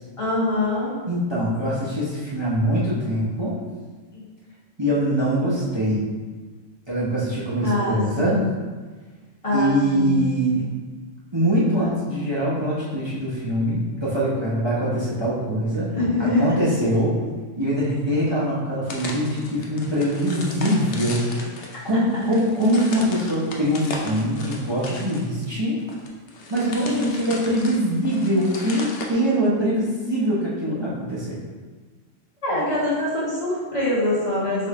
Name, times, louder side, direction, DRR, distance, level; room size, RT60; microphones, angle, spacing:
voice 1, 0.2-0.9 4.1-4.2 7.6-8.4 9.4-10.2 16.0-16.5 26.7-27.1 32.4-34.7, left 1 dB, 25° left, -9 dB, 1.4 m, -24 dB
voice 2, 1.1-3.6 4.8-6.1 6.9-8.4 9.5-10.7 11.3-17.2 17.6-25.8 26.5-31.4, equal, 25° right, -8 dB, 0.7 m, -23 dB
sound 1, 18.9-29.1, left 3 dB, 60° left, 0.8 m, -36 dB
3.6 x 3.3 x 3.6 m, 1.4 s
omnidirectional pair, 1.3 m